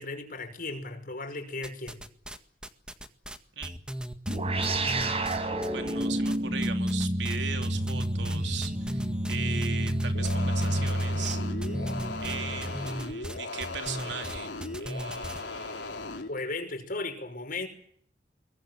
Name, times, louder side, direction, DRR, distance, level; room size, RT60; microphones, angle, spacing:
voice 1, 0.0-2.0 16.3-17.7, left 3 dB, 55° left, 5.8 m, -36 dB
sound 1, 1.6-2.4 2.6-6.4 6.6-7.4 7.6-15.4, equal, 5° right, 1.8 m, -37 dB
sound 2, 4.3-13.1, right 1 dB, 35° right, 4.6 m, -29 dB
voice 2, 5.7-11.4 11.7-11.8 12.2-14.5 14.8-16.0, right 6 dB, 80° right, 3.1 m, -39 dB
sound 3, 10.1-16.3, left 3 dB, 90° left, 3.8 m, -38 dB
25.0 x 22.5 x 7.8 m
head